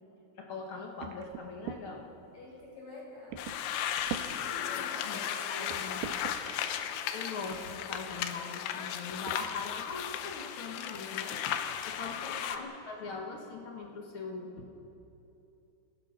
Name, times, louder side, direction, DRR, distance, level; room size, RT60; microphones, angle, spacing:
voice 1, 0.3-2.1 4.7-6.0 7.1-11.5 11.9-14.7, left 4 dB, 70° left, 1 dB, 1.2 m, -41 dB
sound 1, 1.0-1.8 2.6-2.7 3.3-3.7 4.0-4.3 5.0-5.1 5.7-6.4 7.5-7.6 8.1-8.3 9.3-9.4 9.8-9.9 10.2-10.6, right 9 dB, 80° right, 3.0 m, -41 dB
voice 2, 2.3-3.4 4.2-6.0 12.1-12.5, left 1 dB, 45° left, -4 dB, 7.0 m, -47 dB
sound 2, 3.4-12.6, left 10 dB, 85° left, 3.1 m, -36 dB
30.0 x 18.0 x 5.2 m, 2.9 s
omnidirectional pair, 4.8 m